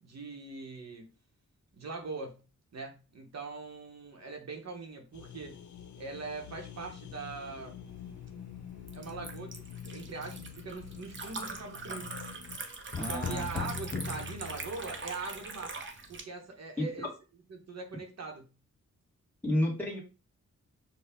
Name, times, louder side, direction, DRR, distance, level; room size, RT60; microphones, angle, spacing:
voice 1, 0.0-1.1 1.7-2.4 2.7-5.6 6.0-7.8 8.9-12.1 13.1-15.8 16.1-17.1 17.5-18.4, right 4 dB, 65° right, 3 dB, 1.0 m, -42 dB
sound 1, 5.1-12.6, left 9 dB, 80° left, 0.6 m, -47 dB
Liquid, 7.9-16.2, right 3 dB, 40° right, 0.7 m, -43 dB
sound 2, 12.9-15.2, left 4 dB, 30° left, 0.4 m, -38 dB
voice 2, 13.0-13.7 16.8-16.9 19.4-20.0, left 1 dB, 5° left, -4 dB, 1.4 m, -31 dB
6.6 x 2.3 x 3.4 m, 0.31 s
wide cardioid pair, 160°, 29 cm